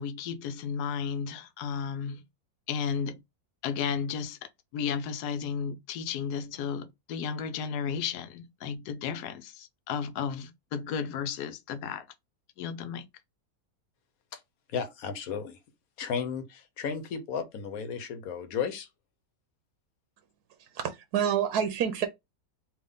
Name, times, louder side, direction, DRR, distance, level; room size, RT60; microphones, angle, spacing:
voice 1, 0.0-2.2 2.7-3.2 3.6-12.1 12.6-13.1, left 7 dB, 85° left, 1.1 m, -33 dB
voice 2, 14.7-15.6 16.0-18.9, left 6 dB, 70° left, 1.2 m, -34 dB
voice 3, 20.6-22.1, right 8 dB, 80° right, 1.2 m, -28 dB
3.5 x 2.9 x 3.7 m
omnidirectional pair, 1.7 m